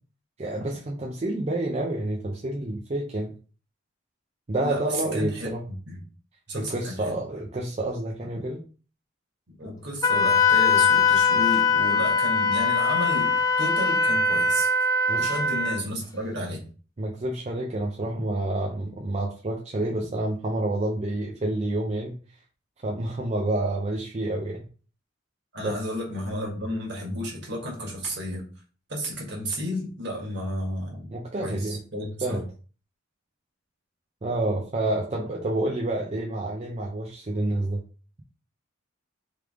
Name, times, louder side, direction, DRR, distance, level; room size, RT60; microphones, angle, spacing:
voice 1, 0.4-3.3 4.5-5.6 6.5-8.6 15.1-15.3 17.0-22.2 22.8-24.6 25.6-25.8 31.1-32.4 34.2-37.8, right 1 dB, 30° right, 0.5 m, -29 dB
voice 2, 5.1-5.5 5.9-6.0 6.5-7.2 9.5-14.7 15.2-16.6 25.5-28.4 28.9-31.1 31.4-32.4, equal, 55° right, 1.6 m, -32 dB
Wind instrument woodwind instrument, 10.0-15.8, left 4 dB, 20° left, 0.4 m, -21 dB
3.4 x 3.3 x 3.5 m
head